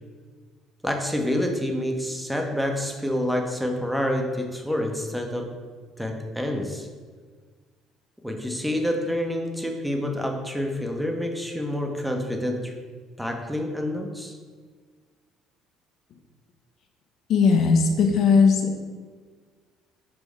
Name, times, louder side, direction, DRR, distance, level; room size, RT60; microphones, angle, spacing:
voice 1, 0.8-5.5 6.0-6.9 8.2-12.7 13.2-14.4, left 1 dB, 5° right, 2 dB, 0.6 m, -28 dB
voice 2, 17.3-18.7, left 5 dB, 50° left, 3 dB, 0.4 m, -18 dB
3.7 x 2.9 x 4.7 m, 1.5 s
figure-of-eight pair, 50°, 0 cm